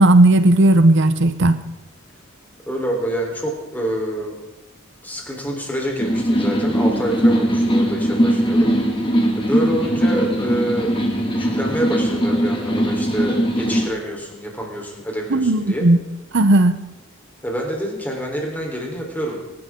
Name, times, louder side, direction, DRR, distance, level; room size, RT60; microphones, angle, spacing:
voice 1, 0.0-1.6 15.3-16.0 16.3-16.8, right 2 dB, 60° right, 11 dB, 0.8 m, -14 dB
voice 2, 2.6-4.4 5.0-8.7 9.0-15.9 17.4-19.4, right 1 dB, 10° left, -1 dB, 3.9 m, -27 dB
sound 1, 6.0-13.9, equal, 25° left, 2.2 m, -20 dB
23.5 x 12.5 x 3.8 m, 1.0 s
head